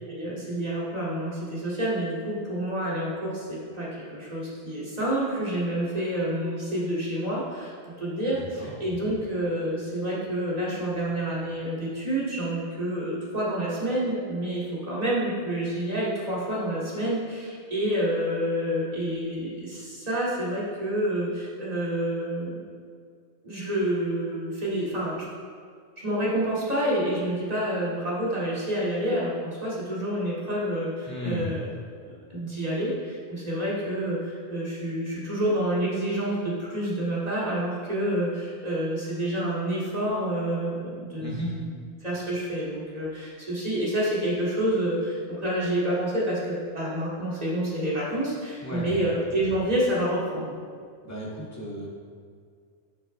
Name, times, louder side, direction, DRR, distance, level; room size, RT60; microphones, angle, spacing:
voice 1, 0.1-22.6 23.4-25.2 26.0-31.7 32.3-41.7 42.0-50.6, right 1 dB, 35° right, -7 dB, 2.3 m, -28 dB
voice 2, 8.4-8.7 31.1-31.5 41.2-41.5 48.6-49.0 51.0-51.9, equal, 15° left, -6 dB, 2.0 m, -34 dB
11.5 x 6.4 x 3.3 m, 2.1 s
omnidirectional pair, 1.2 m